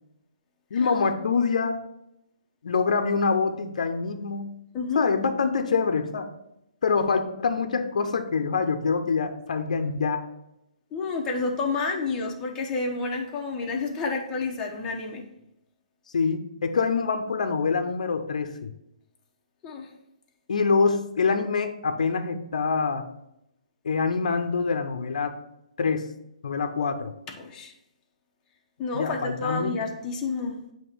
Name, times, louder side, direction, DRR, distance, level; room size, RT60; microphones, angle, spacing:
voice 1, 0.7-1.8 2.6-4.5 4.9-6.3 6.8-10.2 16.1-18.7 20.5-23.1 23.8-25.4 25.8-26.1 26.4-27.1 28.9-29.8, left 5 dB, 70° left, 7 dB, 0.6 m, -25 dB
voice 2, 10.9-15.2 19.6-19.9 27.4-27.7 28.8-30.6, left 4 dB, 20° left, 0 dB, 0.9 m, -30 dB
7.5 x 2.9 x 4.4 m, 0.83 s
hypercardioid pair, 145°, 4 cm